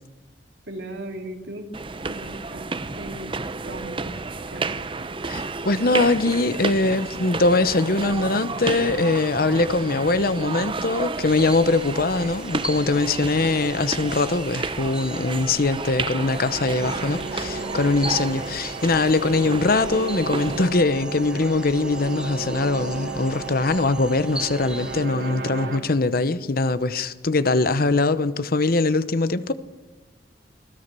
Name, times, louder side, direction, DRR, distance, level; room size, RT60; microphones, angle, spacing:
voice 1, 0.7-1.7 2.1-3.4 3.6-4.7, right 1 dB, 75° right, 3.0 m, -37 dB
sound 1, 1.7-20.7, right 3 dB, 30° right, 0.8 m, -32 dB
voice 2, 5.3-29.5, left 3 dB, 55° left, 0.9 m, -22 dB
sound 2, 11.3-25.1, right 1 dB, 5° right, 1.0 m, -40 dB
sound 3, 15.8-25.8, right 3 dB, 90° right, 3.6 m, -34 dB
24.0 x 16.5 x 6.9 m
head